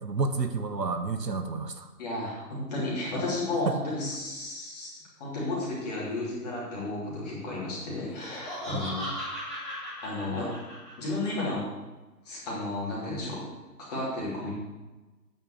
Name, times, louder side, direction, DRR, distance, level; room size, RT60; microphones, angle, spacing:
voice 1, 0.0-1.9 3.7-3.8 8.7-9.0, right 4 dB, 75° right, 8 dB, 1.2 m, -30 dB
voice 2, 2.0-4.9 5.2-9.1 10.0-10.5 11.0-11.6 12.2-13.4 13.9-14.5, left 2 dB, 25° left, -6 dB, 3.1 m, -33 dB
Laughter, 8.0-11.3, equal, ahead, 2.9 m, -37 dB
9.2 x 5.6 x 6.8 m, 1.2 s
figure-of-eight pair, 150°, 49 cm